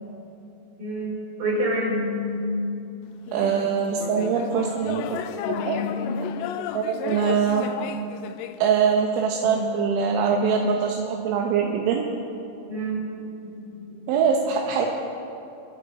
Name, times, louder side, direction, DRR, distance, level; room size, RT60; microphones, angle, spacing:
voice 1, 0.8-1.1 1.4-2.6 3.4-4.5 5.4-6.3 7.6-7.9 9.4-10.6 11.5-11.7 12.7-13.0 13.4-14.1, left 1 dB, 50° right, -4 dB, 5.8 m, -30 dB
sound 1, 3.3-8.6, left 10 dB, 85° left, 2.5 m, -33 dB
voice 2, 3.3-5.2 5.6-5.8 6.7-7.7 8.6-12.0 14.1-14.9, right 7 dB, 80° right, 0 dB, 3.4 m, -23 dB
29.5 x 10.5 x 4.1 m, 2.7 s
omnidirectional pair, 5.5 m